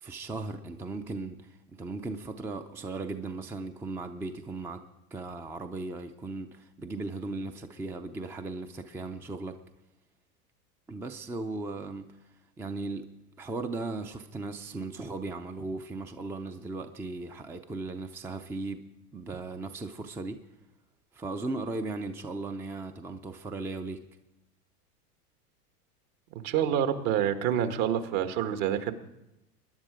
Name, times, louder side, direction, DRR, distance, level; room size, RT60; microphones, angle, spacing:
voice 1, 0.0-4.8 5.1-9.6 10.9-12.2 12.6-20.4 21.1-24.0, right 3 dB, 5° right, 0.4 m, -37 dB
voice 2, 26.4-28.9, right 9 dB, 60° right, 1.7 m, -27 dB
22.0 x 10.5 x 4.9 m
hypercardioid pair, 110°, 47 cm